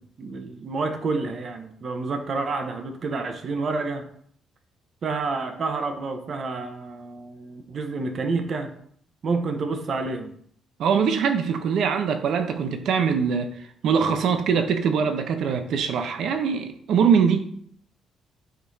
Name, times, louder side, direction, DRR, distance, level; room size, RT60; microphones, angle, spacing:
voice 1, 0.0-4.1 5.0-8.7 9.2-10.3, right 3 dB, 50° right, 1.0 m, -29 dB
voice 2, 10.8-17.5, right 6 dB, 75° right, 0.8 m, -23 dB
12.5 x 5.2 x 2.8 m
cardioid pair, 90°, 0 cm